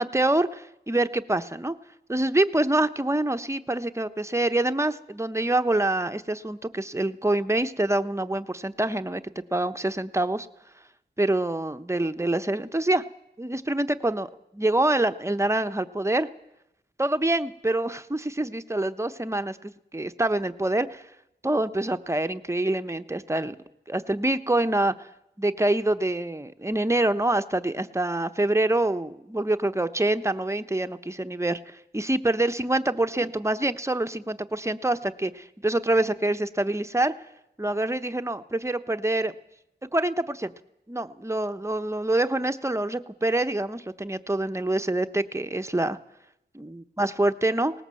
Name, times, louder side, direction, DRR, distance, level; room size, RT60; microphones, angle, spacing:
voice 1, 0.0-1.8 2.1-9.2 9.5-10.5 11.2-13.0 13.4-16.3 17.0-21.0 21.4-23.6 23.9-25.1 25.4-37.1 37.6-39.3 39.9-40.5 40.9-46.0 46.5-47.7, right 1 dB, 15° right, 9 dB, 1.0 m, -26 dB
19.0 x 19.0 x 7.7 m, 0.82 s
wide cardioid pair, 70°, 19 cm